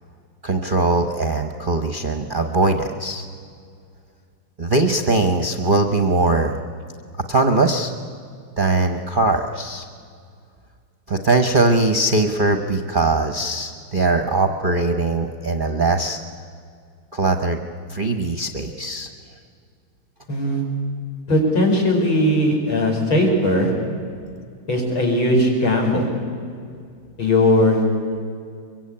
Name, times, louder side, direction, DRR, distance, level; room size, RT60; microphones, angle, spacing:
voice 1, 0.4-3.2 4.6-6.6 7.3-7.9 8.6-9.9 11.1-16.2 17.1-17.6 17.9-19.1, right 2 dB, 35° right, 6 dB, 1.0 m, -20 dB
voice 2, 20.3-20.6 21.3-23.7 24.7-26.1 27.2-27.8, left 1 dB, 75° left, 0 dB, 5.8 m, -18 dB
23.5 x 23.0 x 8.8 m, 2.2 s
omnidirectional pair, 2.2 m